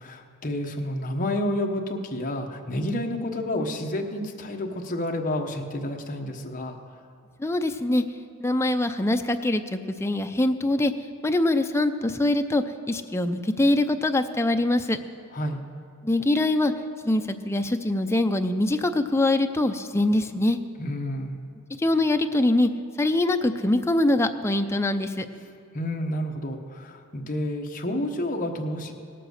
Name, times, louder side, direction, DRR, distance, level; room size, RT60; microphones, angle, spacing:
voice 1, 0.0-6.8 15.3-15.6 20.8-21.4 25.7-28.9, left 1 dB, 35° left, 2 dB, 1.1 m, -30 dB
voice 2, 7.4-8.0 8.4-10.9 11.2-15.0 16.0-16.7 17.0-20.6 21.8-22.7 23.0-25.3, left 1 dB, 10° left, 7 dB, 0.5 m, -23 dB
17.5 x 7.7 x 6.5 m, 2.3 s
head